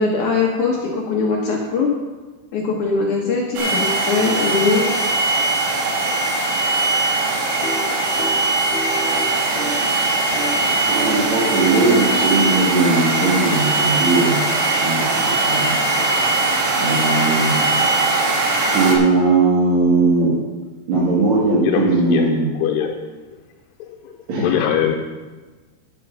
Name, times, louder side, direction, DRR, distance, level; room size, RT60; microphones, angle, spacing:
voice 1, 0.0-1.9 2.5-5.1, left 4 dB, 65° left, -1 dB, 2.1 m, -21 dB
sound 1, 3.6-19.0, right 2 dB, 85° right, 3.7 m, -20 dB
sound 2, 7.5-9.9 10.2-10.5 10.9-14.7, equal, 40° left, 3.1 m, -31 dB
voice 2, 10.8-14.4 14.8-15.7 16.8-17.5 18.7-20.3 20.9-22.5 24.3-24.5, right 3 dB, 50° right, -7 dB, 2.7 m, -18 dB
voice 3, 21.6-22.2 22.6-23.0 23.8-25.0, left 10 dB, 85° left, 3 dB, 2.7 m, -22 dB
10.5 x 8.4 x 5.7 m, 1.3 s
omnidirectional pair, 4.7 m